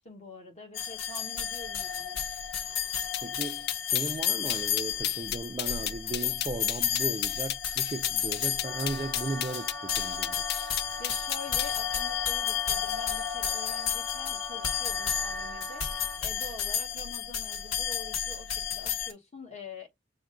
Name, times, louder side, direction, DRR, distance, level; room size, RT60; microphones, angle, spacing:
voice 1, 0.0-2.2 11.0-19.9, left 2 dB, 35° left, 1.4 m, -46 dB
sound 1, 0.7-19.1, left 8 dB, 90° left, 1.0 m, -32 dB
sound 2, 3.1-11.8, left 13 dB, 50° left, 0.3 m, -33 dB
voice 2, 3.2-10.4, right 3 dB, 25° right, 0.4 m, -36 dB
Wind instrument woodwind instrument, 8.6-16.2, equal, 15° left, 0.6 m, -43 dB
5.9 x 2.1 x 3.8 m
head